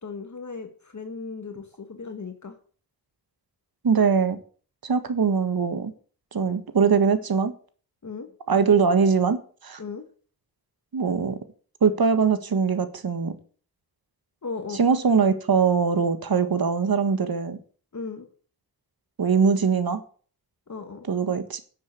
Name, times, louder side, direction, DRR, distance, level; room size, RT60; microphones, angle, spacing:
voice 1, 0.0-2.6 8.0-8.3 9.8-10.0 14.4-14.8 17.9-18.3 20.7-21.1, left 4 dB, 45° left, 6 dB, 1.8 m, -36 dB
voice 2, 3.8-4.4 4.8-5.9 6.3-7.5 8.5-9.8 10.9-11.4 11.8-13.3 14.8-17.6 19.2-20.0 21.1-21.6, right 5 dB, 60° right, 10 dB, 1.7 m, -22 dB
10.5 x 7.1 x 8.4 m, 0.43 s
wide cardioid pair, 90°, 40 cm